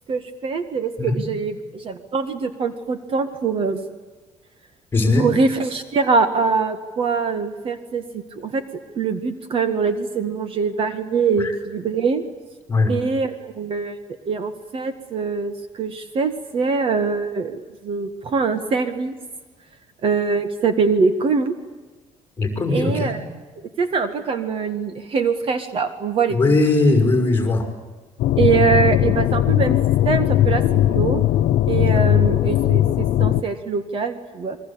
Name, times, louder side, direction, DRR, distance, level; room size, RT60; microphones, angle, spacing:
voice 1, 0.1-3.9 5.2-8.6 9.0-12.2 12.9-14.0 14.3-19.1 20.0-21.5 22.7-23.2 23.8-26.4 28.4-29.8 30.0-31.2 31.7-34.6, right 5 dB, 45° right, 10 dB, 2.0 m, -23 dB
voice 2, 4.9-5.3 11.4-11.5 12.7-12.9 22.4-23.2 26.3-27.7, left 3 dB, 15° left, 6 dB, 5.6 m, -19 dB
sound 1, 28.2-33.4, left 13 dB, 85° left, 1.0 m, -18 dB
28.5 x 23.0 x 8.8 m, 1.3 s
cardioid pair, 155°, 13 cm